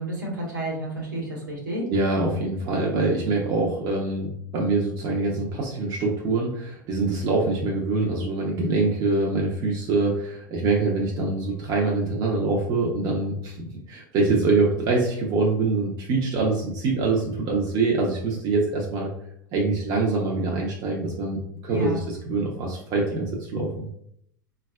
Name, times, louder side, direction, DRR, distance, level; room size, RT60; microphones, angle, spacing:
voice 1, 0.0-1.9 21.7-22.0, right 1 dB, 80° right, -2 dB, 1.1 m, -30 dB
voice 2, 1.9-19.1 19.5-23.9, right 3 dB, 45° right, -2 dB, 0.6 m, -24 dB
3.9 x 2.3 x 2.2 m, 0.72 s
figure-of-eight pair, 80°, 10 cm